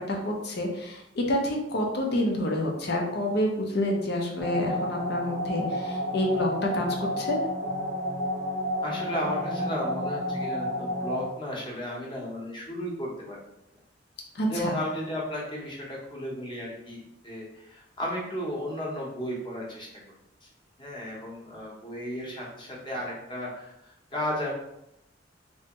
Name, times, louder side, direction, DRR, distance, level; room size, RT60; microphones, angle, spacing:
voice 1, 0.0-7.4 14.3-14.7, left 1 dB, 60° left, 1 dB, 0.7 m, -28 dB
sound 1, 4.4-11.3, equal, 30° right, 0.6 m, -31 dB
voice 2, 8.8-13.4 14.5-19.9 20.4-20.5 20.8-24.5, equal, 25° left, -3 dB, 1.0 m, -34 dB
3.4 x 3.1 x 3.0 m, 0.83 s
head